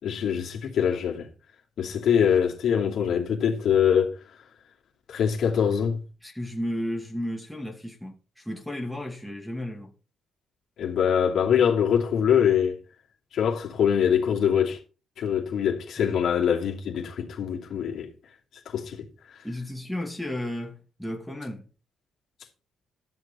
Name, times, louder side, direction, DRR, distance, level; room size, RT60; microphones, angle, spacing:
voice 1, 0.0-1.3 1.8-4.1 5.1-6.0 10.8-12.8 13.3-14.8 15.2-18.1 18.7-19.1, left 8 dB, 65° left, 2.8 m, -23 dB
voice 2, 6.2-9.9 19.4-21.7, left 1 dB, ahead, 2.3 m, -33 dB
13.0 x 6.6 x 4.4 m
cardioid pair, 90°, 0 cm